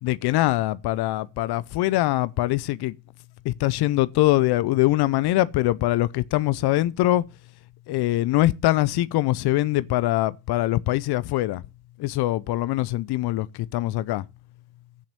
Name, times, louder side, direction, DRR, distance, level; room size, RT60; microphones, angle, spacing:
voice 1, 0.0-3.0 3.4-7.2 7.9-11.6 12.0-14.2, left 16 dB, 70° left, 0.7 m, -23 dB
9.0 x 7.2 x 6.9 m
hypercardioid pair, 45°, 40 cm